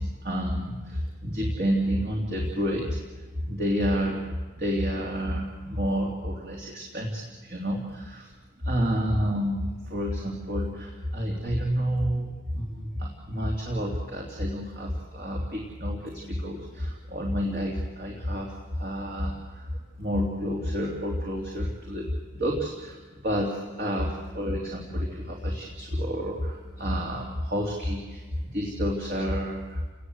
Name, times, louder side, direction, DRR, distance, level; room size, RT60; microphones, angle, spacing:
voice 1, 0.0-8.3 8.6-29.8, equal, 45° right, -1 dB, 3.1 m, -29 dB
29.5 x 19.5 x 8.1 m, 1.3 s
head